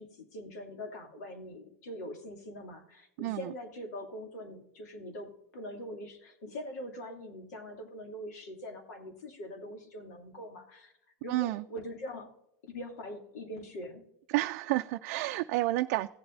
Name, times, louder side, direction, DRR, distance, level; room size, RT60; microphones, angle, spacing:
voice 1, 0.0-10.9 11.2-12.3 12.6-14.1, left 1 dB, 80° left, 3 dB, 2.7 m, -43 dB
voice 2, 3.2-3.5 11.3-11.6 14.3-16.1, right 18 dB, 60° right, 7 dB, 0.4 m, -30 dB
17.0 x 7.9 x 2.6 m, 0.78 s
supercardioid pair, 135°, 9 cm